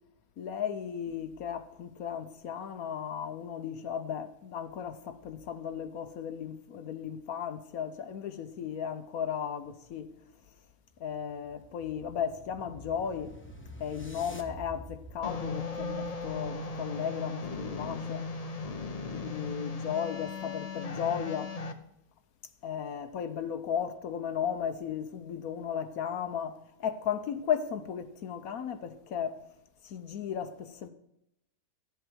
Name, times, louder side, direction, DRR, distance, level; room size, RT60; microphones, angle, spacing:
voice 1, 0.4-10.1 11.0-13.4 13.8-18.2 19.1-21.5 22.6-29.4 29.8-30.9, left 8 dB, 70° left, 1.2 m, -35 dB
sound 1, 10.9-17.1, equal, 10° left, 1.0 m, -49 dB
sound 2, 15.2-21.7, left 4 dB, 35° left, 0.7 m, -37 dB
12.5 x 8.1 x 6.1 m
omnidirectional pair, 1.6 m